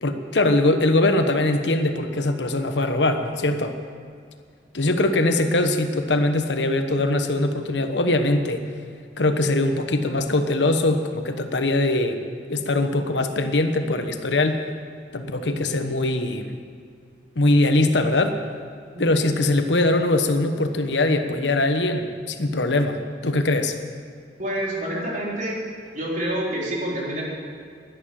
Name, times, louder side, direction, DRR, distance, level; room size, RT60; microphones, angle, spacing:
voice 1, 0.0-3.8 4.7-8.6 9.2-12.2 12.5-14.7 15.1-16.5 17.3-18.4 19.0-23.8, left 2 dB, 90° left, 7 dB, 1.1 m, -22 dB
voice 2, 24.4-25.6 25.9-27.2, right 1 dB, 50° right, -4 dB, 3.8 m, -27 dB
11.5 x 11.0 x 8.9 m, 2.2 s
head